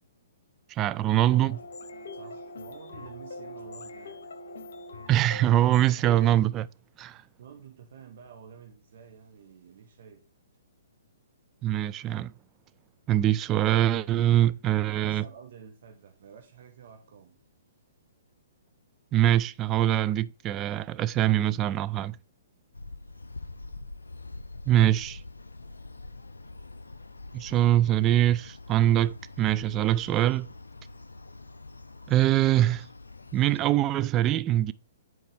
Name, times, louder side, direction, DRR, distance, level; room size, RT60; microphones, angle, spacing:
voice 1, 0.7-1.6 5.1-6.7 7.0-7.2 11.6-12.3 13.1-15.2 19.1-22.2 24.7-25.2 27.3-30.5 32.1-32.9 33.3-34.7, right 13 dB, 25° right, 0.3 m, -23 dB
sound 1, 1.2-6.3, left 2 dB, 65° left, 1.1 m, -43 dB
voice 2, 2.1-4.2 7.4-10.2 14.8-17.4, right 7 dB, 55° right, 1.1 m, -50 dB
sound 2, 22.7-33.6, left 2 dB, 85° left, 0.5 m, -44 dB
9.1 x 4.3 x 3.4 m
figure-of-eight pair, 125°, 0 cm